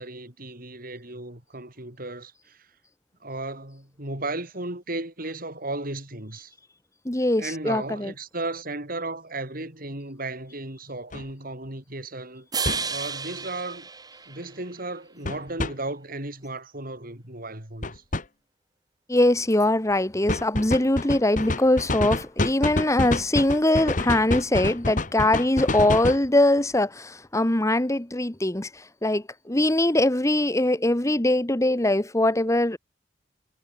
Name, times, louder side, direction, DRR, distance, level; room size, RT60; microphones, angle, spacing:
voice 1, 0.0-2.7 3.2-6.5 7.4-13.9 14.3-18.0, right 2 dB, 55° right, 7.2 m, -35 dB
voice 2, 7.0-8.1 19.1-28.7 29.0-32.8, left 1 dB, 15° left, 1.4 m, -22 dB
sound 1, 11.1-11.2 12.7-12.9 15.3-15.7 17.8-18.2 20.3-26.3, left 2 dB, 45° left, 1.9 m, -27 dB
sound 2, 12.5-14.9, right 5 dB, 20° right, 7.1 m, -32 dB
head